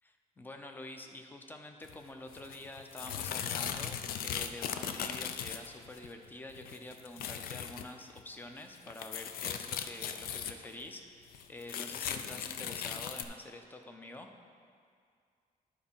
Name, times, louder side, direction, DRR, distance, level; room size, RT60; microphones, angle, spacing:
voice 1, 0.0-4.0 4.2-14.3, left 2 dB, 15° left, 5 dB, 0.5 m, -47 dB
sound 1, 1.8-2.0 2.3-6.1 6.5-7.9 8.2-8.3 8.6-10.9 11.3-13.2, left 8 dB, 85° left, 0.5 m, -38 dB
11.0 x 4.3 x 5.5 m, 2.2 s
cardioid pair, 170°, 15 cm